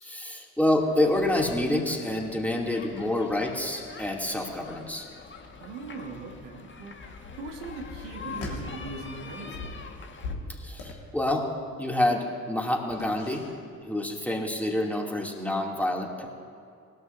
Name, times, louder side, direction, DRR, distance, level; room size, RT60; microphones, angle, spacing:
voice 1, 0.0-5.1 10.6-11.5 11.8-13.5 13.8-16.3, left 1 dB, 5° left, -1 dB, 2.7 m, -27 dB
sound 1, 0.8-10.3, left 4 dB, 30° left, 1.7 m, -45 dB
voice 2, 5.6-9.9, right 3 dB, 70° right, 1 dB, 1.8 m, -40 dB
sound 2, 8.2-9.1 9.4-11.5 12.8-13.8 14.0-14.2, left 3 dB, 65° left, 2.5 m, -40 dB
20.5 x 13.0 x 2.7 m, 2.4 s
figure-of-eight pair, 45°, 39 cm